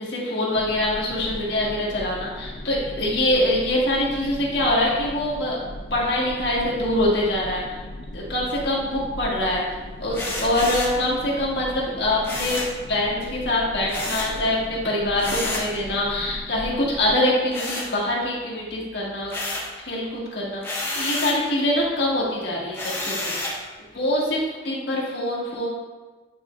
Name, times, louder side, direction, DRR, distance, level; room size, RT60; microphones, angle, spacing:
voice 1, 0.0-5.6 5.9-7.8 8.1-9.6 10.0-12.6 12.9-19.3 19.8-23.3 23.9-25.7, left 1 dB, 70° left, -5 dB, 1.5 m, -24 dB
sound 1, 0.5-17.1, left 1 dB, 50° left, 0.5 m, -38 dB
sound 2, 10.1-11.0 12.2-12.8 13.9-14.4 15.2-15.7 17.5-18.4 18.8-19.8 20.6-21.4 22.7-23.6, left 2 dB, 10° left, 0.8 m, -30 dB
9.1 x 4.3 x 2.4 m, 1.3 s
head